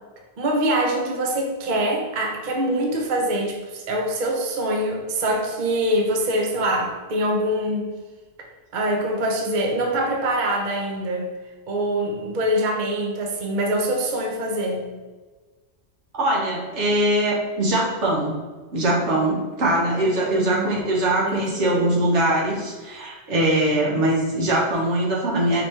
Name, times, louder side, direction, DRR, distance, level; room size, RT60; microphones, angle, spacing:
voice 1, 0.4-7.9 8.7-11.3 11.7-14.9 20.0-20.8 21.3-21.9, right 1 dB, 50° right, 1 dB, 0.7 m, -24 dB
voice 2, 16.1-18.3 18.7-25.6, right 1 dB, 80° right, -3 dB, 1.4 m, -22 dB
5.0 x 3.0 x 3.2 m, 1.3 s
omnidirectional pair, 1.2 m